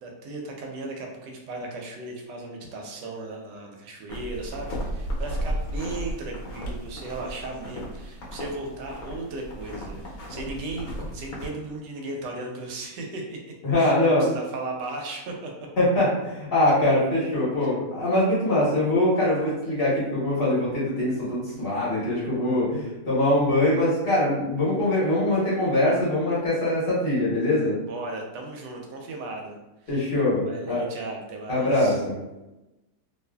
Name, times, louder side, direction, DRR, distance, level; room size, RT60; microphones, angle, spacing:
voice 1, 0.0-13.4 13.8-15.5 17.6-17.7 27.9-29.6 29.8-30.0 30.4-32.0, right 2 dB, 80° right, 1 dB, 1.2 m, -36 dB
sound 1, 4.1-11.5, equal, 65° left, 1.0 m, -34 dB
voice 2, 13.6-14.3 15.8-27.8 29.9-30.8 31.5-32.1, left 1 dB, 45° left, -8 dB, 0.9 m, -23 dB
2.7 x 2.5 x 2.2 m, 0.99 s
omnidirectional pair, 1.9 m